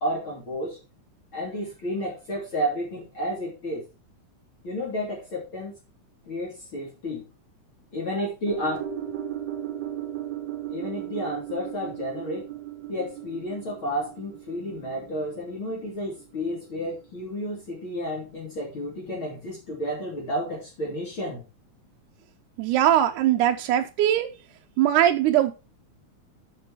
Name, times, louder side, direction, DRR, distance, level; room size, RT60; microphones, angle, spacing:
voice 1, 0.0-0.8 1.3-3.8 4.6-5.7 6.3-7.3 7.9-8.8 10.7-12.5 12.9-21.4, equal, 40° left, 3.3 m, -31 dB
sound 1, 8.5-16.9 17.2-17.3, right 11 dB, 60° right, 1.2 m, -36 dB
voice 2, 22.6-24.3 24.8-25.5, right 11 dB, 90° right, 2.1 m, -21 dB
8.4 x 6.0 x 4.7 m
omnidirectional pair, 3.5 m